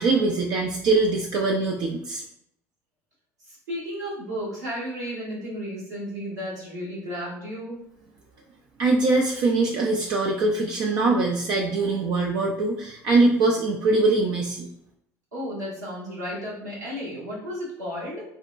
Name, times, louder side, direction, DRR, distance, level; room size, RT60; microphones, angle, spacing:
voice 1, 0.0-2.2 8.8-14.7, right 3 dB, 50° right, 0 dB, 0.4 m, -22 dB
voice 2, 3.4-7.8 15.3-18.2, equal, 85° right, -9 dB, 1.4 m, -33 dB
4.0 x 2.1 x 2.4 m, 0.76 s
hypercardioid pair, 65°, 9 cm